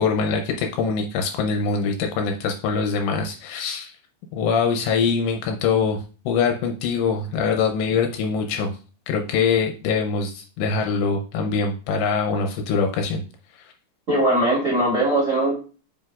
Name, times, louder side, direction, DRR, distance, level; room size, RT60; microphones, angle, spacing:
voice 1, 0.0-3.9 4.3-8.7 9.1-13.2, left 5 dB, 80° left, 3 dB, 2.8 m, -23 dB
voice 2, 14.1-15.5, right 1 dB, 20° right, -5 dB, 2.4 m, -20 dB
7.8 x 5.3 x 2.4 m, 0.36 s
omnidirectional pair, 5.3 m